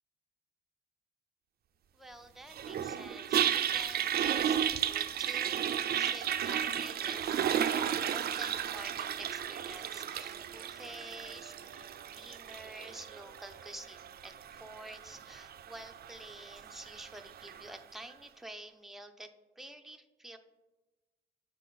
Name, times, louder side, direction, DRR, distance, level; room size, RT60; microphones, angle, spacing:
voice 1, 1.9-5.6 5.9-20.4, right 1 dB, ahead, 6 dB, 0.5 m, -49 dB
Toilet flush, 2.5-17.7, right 9 dB, 50° right, 0.4 m, -34 dB
9.0 x 4.2 x 3.6 m, 1.1 s
cardioid pair, 90°, 20 cm